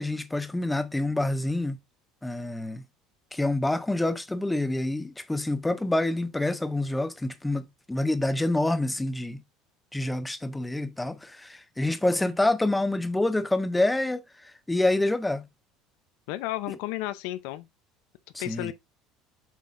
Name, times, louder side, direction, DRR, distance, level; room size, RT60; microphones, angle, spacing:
voice 1, 0.0-1.8 2.2-2.8 3.3-9.4 9.9-14.2 14.7-15.5 18.3-18.7, left 2 dB, 5° left, 0.5 m, -27 dB
voice 2, 16.3-17.7 18.4-18.7, left 16 dB, 65° left, 0.6 m, -32 dB
7.4 x 5.6 x 2.5 m
cardioid pair, 180°, 0 cm